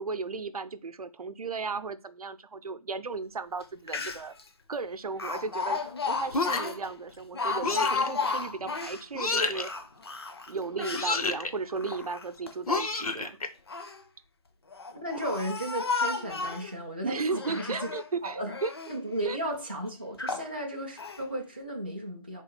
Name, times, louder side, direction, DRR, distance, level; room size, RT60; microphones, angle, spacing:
voice 1, 0.0-4.3 4.7-9.7 10.5-13.4 17.0-18.7 19.2-19.4, right 4 dB, 80° right, 0.6 m, -35 dB
Speech, 3.6-3.7 3.9-4.4 5.2-9.0 9.5-11.1 11.7-12.5 13.4-14.0 14.7-16.7 17.3-18.1 18.5-19.0 19.5-19.6 20.2-20.5 21.0-21.2, left 4 dB, 45° left, 0.5 m, -33 dB
sound 1, 6.3-6.8 7.6-8.1 9.1-9.7 10.9-11.5 12.7-13.5, left 3 dB, 75° left, 0.7 m, -29 dB
voice 2, 14.9-17.9 18.2-18.6 18.9-22.4, right 1 dB, 15° right, 0.4 m, -34 dB
3.6 x 2.5 x 4.3 m
figure-of-eight pair, 170°, 19 cm